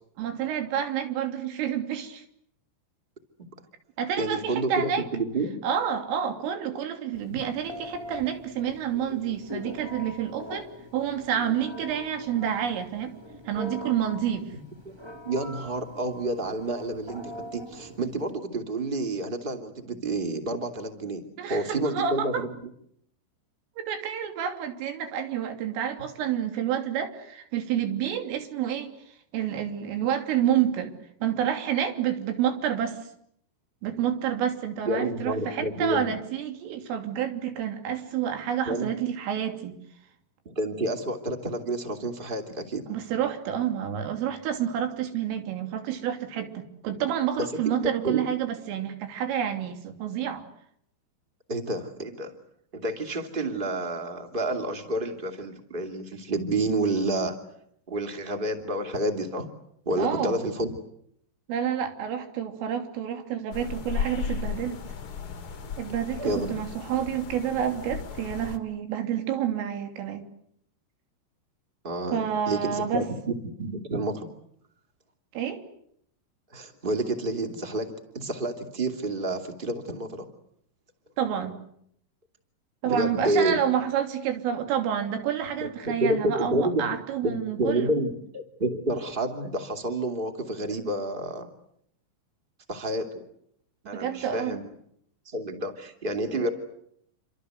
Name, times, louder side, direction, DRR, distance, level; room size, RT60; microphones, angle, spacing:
voice 1, 0.2-2.2 4.0-5.1 5.6-13.2 13.5-14.5 21.4-22.5 23.8-29.0 29.3-31.0 31.2-33.0 33.8-39.8 42.9-50.5 60.0-60.4 61.5-64.8 65.8-70.2 72.1-73.1 75.3-75.6 81.2-81.6 82.8-87.9 93.9-94.6, right 9 dB, 85° right, 6 dB, 5.5 m, -29 dB
voice 2, 4.2-5.6 14.5-14.6 15.2-21.2 21.5-22.5 34.8-36.1 38.6-38.9 40.4-42.8 47.6-48.3 51.5-52.3 52.7-57.3 57.9-59.5 59.8-60.7 66.2-66.5 71.8-74.2 76.5-80.3 82.8-83.6 85.6-86.8 87.2-91.5 92.7-93.2 93.8-94.6 95.2-96.5, right 2 dB, 20° right, 5 dB, 1.6 m, -29 dB
Telephone, 7.1-18.3, left 1 dB, 45° right, 0.3 m, -42 dB
sound 1, 63.5-68.6, left 6 dB, 60° left, 1.4 m, -35 dB
28.0 x 26.5 x 8.1 m, 0.72 s
omnidirectional pair, 5.6 m